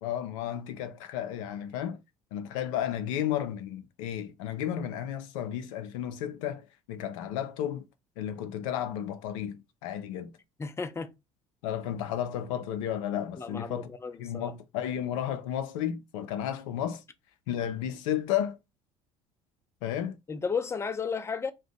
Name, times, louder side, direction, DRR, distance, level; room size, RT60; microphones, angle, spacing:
voice 1, 0.0-2.0 2.3-7.8 8.2-10.3 11.6-13.9 14.2-17.0 17.5-18.6 19.8-20.1, left 10 dB, 80° left, 0.4 m, -33 dB
voice 2, 10.6-11.1 13.4-14.5 20.3-21.5, left 5 dB, 15° left, 0.5 m, -33 dB
2.5 x 2.1 x 3.8 m
hypercardioid pair, 65°, 17 cm